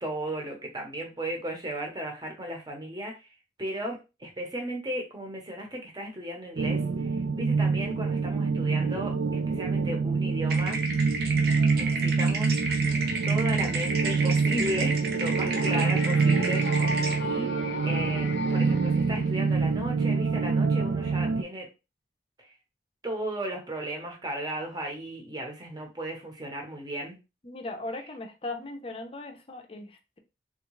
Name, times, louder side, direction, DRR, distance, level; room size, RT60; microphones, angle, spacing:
voice 1, 0.0-3.3 3.6-9.1 9.5-10.8 11.8-12.5 13.2-21.7 22.4-22.5 23.0-27.2, right 1 dB, 25° right, 1 dB, 0.8 m, -35 dB
sound 1, 6.6-21.4, right 4 dB, 80° right, 0.3 m, -26 dB
sound 2, 10.5-17.2, right 3 dB, 60° right, 0.7 m, -33 dB
sound 3, 15.5-19.7, left 4 dB, 80° left, 0.6 m, -37 dB
voice 2, 27.4-30.2, left 2 dB, 30° left, 5 dB, 0.5 m, -38 dB
3.5 x 2.3 x 3.0 m, 0.28 s
head